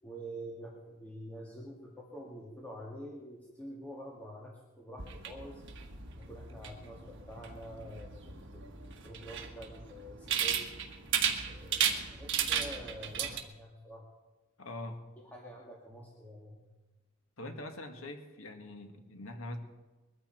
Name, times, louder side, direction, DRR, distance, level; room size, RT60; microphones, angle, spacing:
voice 1, 0.0-5.6 6.1-10.7 11.5-14.0 15.2-16.6, right 1 dB, 10° left, -4 dB, 2.0 m, -47 dB
sound 1, 5.0-13.4, right 8 dB, 60° right, 1.6 m, -35 dB
voice 2, 14.6-15.1 17.4-19.6, left 1 dB, 80° left, 5 dB, 1.9 m, -43 dB
21.5 x 14.0 x 4.5 m, 1.2 s
head